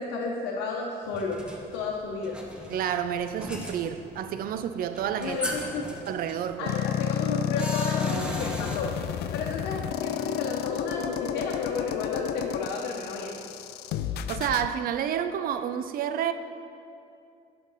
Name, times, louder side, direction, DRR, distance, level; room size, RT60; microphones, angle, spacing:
voice 1, 0.0-1.4 1.7-2.4 5.2-5.9 6.6-8.9 9.3-13.3, left 4 dB, 90° left, 0.8 m, -32 dB
sound 1, 1.1-8.8, equal, 5° right, 1.0 m, -38 dB
voice 2, 2.7-5.4 6.1-6.7 14.3-16.3, right 9 dB, 60° right, 0.5 m, -29 dB
sound 2, 6.7-14.7, left 10 dB, 75° left, 0.4 m, -31 dB
11.0 x 5.8 x 4.0 m
cardioid pair, 110°, 17 cm